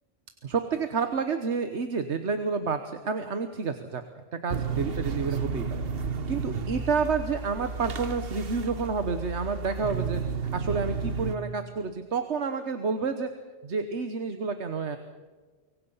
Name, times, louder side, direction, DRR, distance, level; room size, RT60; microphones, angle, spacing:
voice 1, 0.4-4.0 4.4-5.6 6.3-10.2 10.5-13.3 13.6-15.0, right 5 dB, 75° right, 8 dB, 1.5 m, -29 dB
sound 1, 4.5-11.4, right 5 dB, 55° right, 1.3 m, -32 dB
25.5 x 23.5 x 5.6 m, 1.4 s
omnidirectional pair, 1.2 m